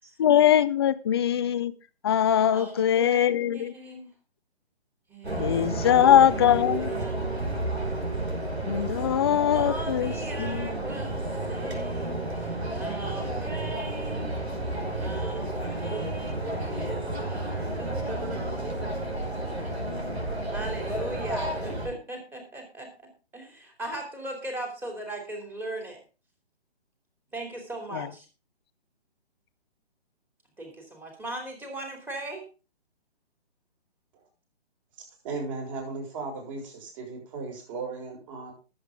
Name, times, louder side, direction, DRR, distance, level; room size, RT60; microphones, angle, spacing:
voice 1, 0.2-1.7 2.0-3.7 5.4-6.8 8.6-10.1 10.4-10.7 16.5-17.2 18.2-18.4 19.9-20.1 27.9-28.1, left 10 dB, 25° left, 14 dB, 0.6 m, -22 dB
voice 2, 2.5-4.1 5.1-6.1 6.8-8.0 9.5-14.4 14.7-19.1 20.5-26.0 27.3-28.3 30.6-32.4, right 1 dB, 5° right, 3 dB, 3.0 m, -39 dB
sound 1, 5.2-21.9, right 2 dB, 80° right, 5.6 m, -31 dB
voice 3, 35.2-38.5, right 4 dB, 30° right, 1 dB, 6.2 m, -36 dB
19.0 x 7.9 x 3.7 m, 0.33 s
figure-of-eight pair, 140°, 32 cm